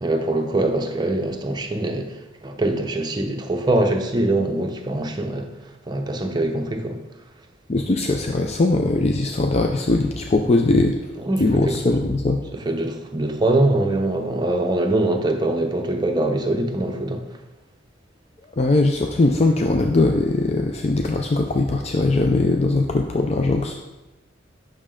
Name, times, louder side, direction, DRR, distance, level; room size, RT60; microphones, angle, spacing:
voice 1, 0.0-2.1 2.4-5.5 5.9-7.0 11.2-11.8 12.5-17.3, right 2 dB, 20° right, 0.7 m, -23 dB
voice 2, 7.7-10.9 11.4-12.4 18.6-23.7, left 2 dB, 30° left, 0.4 m, -20 dB
8.7 x 6.1 x 3.7 m
head